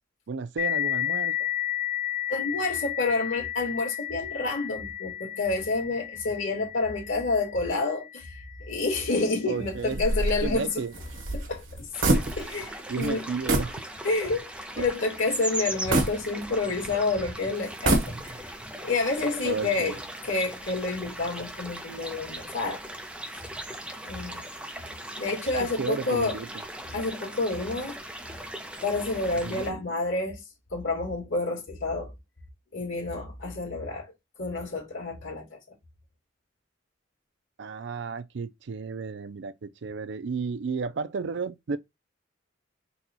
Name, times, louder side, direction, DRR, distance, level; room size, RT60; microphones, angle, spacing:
voice 1, 0.3-1.5 9.5-10.0 10.4-10.9 12.9-13.8 14.8-14.9 19.4-20.0 25.6-26.6 29.4-29.8 37.6-41.8, right 5 dB, 60° right, 0.4 m, -33 dB
sound 1, 0.6-9.8, left 12 dB, 40° left, 0.4 m, -33 dB
voice 2, 2.3-10.8 11.3-13.3 14.0-14.4 14.8-18.4 18.8-20.0 20.2-22.8 24.0-24.4 25.2-26.4 26.9-28.0 28.8-30.4 30.7-32.1 32.7-34.1 34.4-35.6, left 3 dB, 85° left, 1.9 m, -29 dB
sound 2, 9.9-12.7 13.0-13.1 13.5-13.8 14.3-14.4 15.9-16.9 17.7-18.5, right 2 dB, 85° right, 1.4 m, -26 dB
sound 3, 11.9-29.7, right 1 dB, 5° right, 0.6 m, -39 dB
4.1 x 2.3 x 4.2 m
head